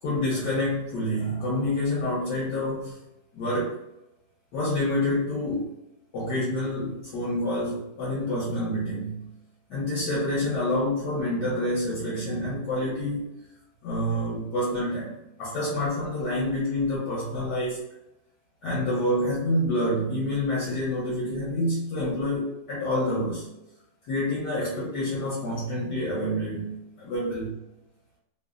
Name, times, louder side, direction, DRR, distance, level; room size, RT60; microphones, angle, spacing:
voice 1, 0.0-3.0 3.3-3.7 4.5-5.7 6.1-9.3 9.7-13.3 13.8-17.9 18.6-23.4 24.1-27.6, left 1 dB, 70° left, -7 dB, 1.3 m, -27 dB
3.2 x 2.0 x 2.3 m, 0.88 s
omnidirectional pair, 2.0 m